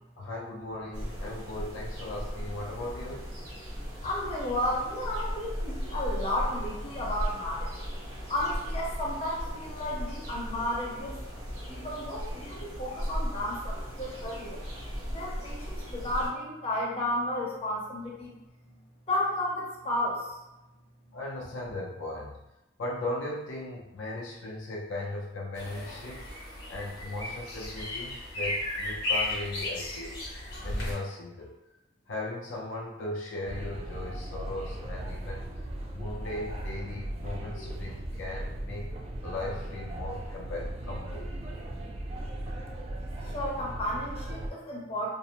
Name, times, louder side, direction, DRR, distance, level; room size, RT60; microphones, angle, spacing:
voice 1, 0.2-3.2 21.1-22.4 22.8-26.2 26.7-30.2 30.6-31.5 32.1-35.4 35.9-38.9 39.2-41.3, left 2 dB, 80° left, -3 dB, 0.5 m, -37 dB
sound 1, 0.9-16.3, equal, 80° right, 1.0 m, -37 dB
voice 2, 3.7-7.7 8.3-11.2 11.5-14.6 15.1-18.4 18.6-18.7 19.1-20.4 43.3-45.1, left 1 dB, 30° left, -4 dB, 0.6 m, -33 dB
sound 2, 25.6-31.0, left 2 dB, 55° left, 0.8 m, -34 dB
sound 3, 33.4-44.5, right 1 dB, 30° right, 0.3 m, -37 dB
2.6 x 2.0 x 2.8 m, 0.95 s
head